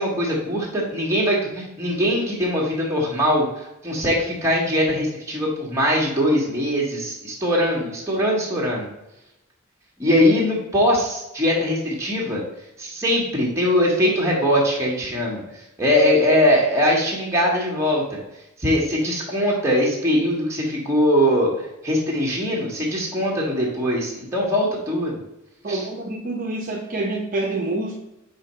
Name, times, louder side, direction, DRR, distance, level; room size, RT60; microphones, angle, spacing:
voice 1, 0.0-8.9 10.0-12.4 12.8-15.4 15.8-18.2 18.6-21.5 21.8-25.2 25.7-25.8, equal, 15° right, -4 dB, 1.6 m, -21 dB
voice 2, 25.6-28.0, right 2 dB, 40° right, -1 dB, 0.7 m, -27 dB
5.5 x 4.2 x 4.3 m, 0.91 s
head